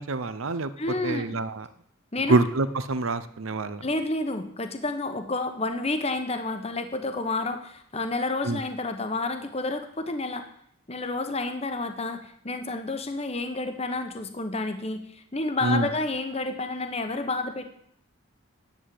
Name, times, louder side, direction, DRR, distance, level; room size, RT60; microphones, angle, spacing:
voice 1, 0.0-0.7 1.0-1.7 2.3-3.9 8.4-8.6 15.6-15.9, right 2 dB, 70° right, 13 dB, 0.8 m, -26 dB
voice 2, 0.8-1.2 2.1-2.5 3.8-10.5 10.9-17.6, left 2 dB, 30° left, 8 dB, 1.0 m, -30 dB
10.5 x 8.5 x 7.7 m, 0.71 s
head